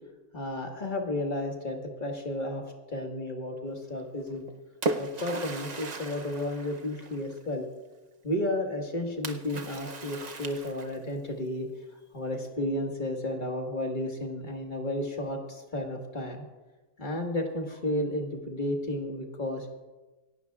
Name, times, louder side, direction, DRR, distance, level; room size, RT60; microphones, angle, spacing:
voice 1, 0.3-2.6 2.9-4.4 5.0-7.7 8.2-11.7 12.1-16.4 17.0-19.7, left 1 dB, 35° left, 2 dB, 1.8 m, -32 dB
Splash splatter, 4.3-7.4 9.2-11.2, right 2 dB, 40° right, 0.7 m, -36 dB
27.0 x 11.0 x 2.4 m, 1.2 s
omnidirectional pair, 1.4 m